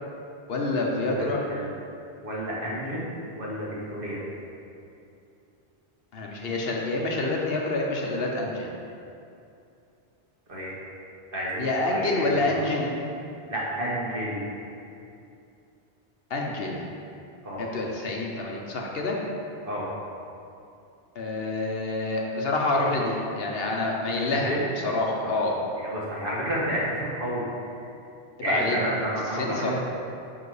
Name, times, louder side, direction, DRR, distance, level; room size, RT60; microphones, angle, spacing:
voice 1, 0.5-1.4 6.1-8.7 11.6-12.9 16.3-16.8 17.6-19.2 21.1-25.5 28.5-28.8 29.3-29.7, left 2 dB, 60° left, -1 dB, 1.0 m, -27 dB
voice 2, 1.0-1.7 2.2-3.0 3.3-4.2 10.5-10.7 11.3-12.4 13.5-14.5 17.4-17.7 19.6-19.9 24.2-24.7 25.2-25.3 25.8-27.4 28.4-29.7, equal, 55° right, -6 dB, 1.5 m, -30 dB
5.9 x 5.0 x 4.8 m, 2.6 s
omnidirectional pair, 1.2 m